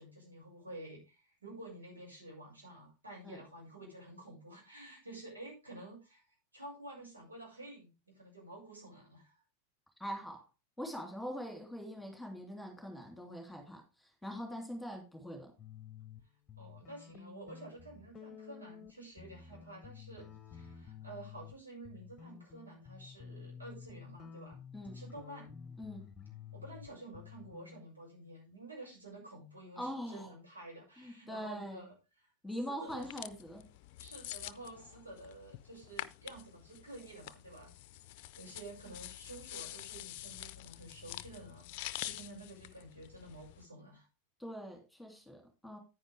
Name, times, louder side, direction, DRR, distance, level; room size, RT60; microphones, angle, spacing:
voice 1, 0.0-6.2 6.5-9.4 16.6-24.6 24.9-25.5 26.5-31.9 32.6-33.0 34.0-37.7 38.4-44.1, right 2 dB, 80° right, 6.8 m, -50 dB
voice 2, 10.0-10.4 10.8-15.5 24.7-25.0 25.8-26.1 29.8-30.3 31.0-31.9 32.4-33.7 44.4-45.8, equal, ahead, 3.1 m, -43 dB
sound 1, 15.6-16.2 16.5-21.6 21.8-27.8, left 7 dB, 20° left, 1.0 m, -51 dB
sound 2, 32.9-43.6, left 15 dB, 45° left, 0.6 m, -47 dB
9.8 x 9.6 x 3.6 m
figure-of-eight pair, 90°, 0 cm